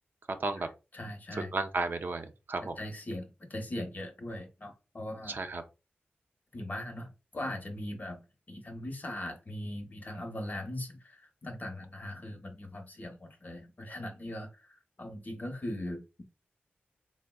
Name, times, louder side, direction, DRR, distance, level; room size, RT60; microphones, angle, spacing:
voice 1, 0.5-1.5 2.6-5.4 6.5-8.2 8.5-16.0, left 1 dB, 45° left, 0.9 m, -40 dB
voice 2, 1.3-2.8 5.3-5.6, right 3 dB, 55° right, 0.4 m, -33 dB
3.5 x 2.0 x 2.2 m
cardioid pair, 60°, 4 cm